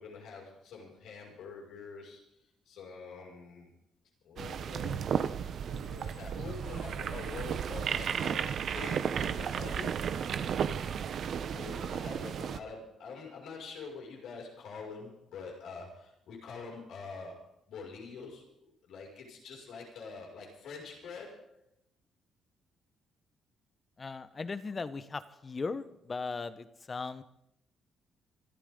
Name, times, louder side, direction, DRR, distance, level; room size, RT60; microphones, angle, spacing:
voice 1, 0.0-2.4 2.7-3.7 4.2-5.3 5.6-10.0 11.5-21.6, left 4 dB, 80° left, 0 dB, 6.1 m, -46 dB
sound 1, 4.4-12.6, right 7 dB, 60° right, 0.9 m, -34 dB
voice 2, 24.0-27.2, left 4 dB, 35° left, 12 dB, 1.1 m, -38 dB
25.5 x 13.0 x 3.9 m, 0.77 s
cardioid pair, 90°, 0 cm